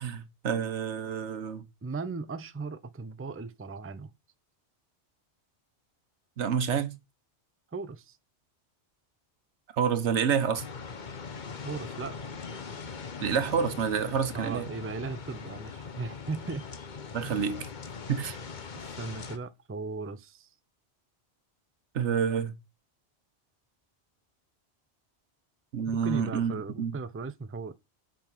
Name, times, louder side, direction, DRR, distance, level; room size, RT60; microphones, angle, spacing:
voice 1, 0.0-1.6 6.4-7.0 9.8-10.6 13.2-14.7 17.1-17.6 18.1-18.4 21.9-22.5 25.7-26.5 26.8-26.9, right 7 dB, 85° right, 1.3 m, -28 dB
voice 2, 1.8-4.1 7.7-8.2 11.6-12.2 14.3-16.6 17.2-17.4 18.7-20.5 26.0-27.7, right 4 dB, 15° right, 0.5 m, -37 dB
sound 1, 10.5-19.4, left 5 dB, 45° left, 1.0 m, -41 dB
7.5 x 5.3 x 5.5 m
omnidirectional pair, 1.2 m